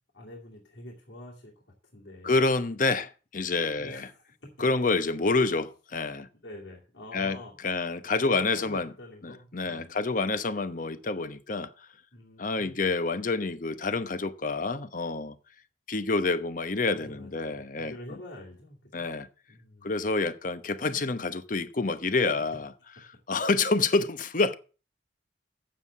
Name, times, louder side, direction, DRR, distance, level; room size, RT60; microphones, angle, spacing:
voice 1, 0.1-1.6 1.9-2.4 3.8-4.5 6.4-7.6 8.2-10.0 12.1-12.9 16.8-19.1 19.5-20.0, left 1 dB, 80° left, 2.5 m, -46 dB
voice 2, 2.2-4.0 4.6-6.3 7.1-7.4 7.6-8.9 9.2-11.9 12.4-15.4 15.9-17.9 18.9-19.3 19.8-22.7 23.3-24.6, left 3 dB, 45° left, 0.9 m, -28 dB
8.8 x 7.5 x 7.0 m
head